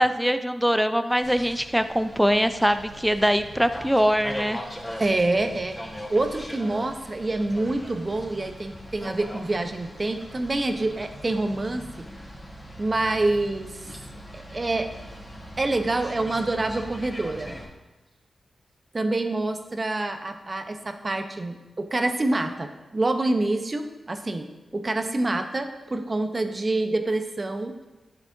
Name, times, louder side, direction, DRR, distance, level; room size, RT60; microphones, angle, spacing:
voice 1, 0.0-4.6, equal, ahead, 9 dB, 0.5 m, -22 dB
sound 1, 1.2-17.6, equal, 25° left, 2.6 m, -40 dB
voice 2, 5.0-5.7 6.1-11.8 12.8-13.7 14.3-14.9 15.6-17.6 18.9-27.7, right 2 dB, 40° right, 6 dB, 0.9 m, -26 dB
11.5 x 6.9 x 2.7 m, 1.1 s
cardioid pair, 40°, 0 cm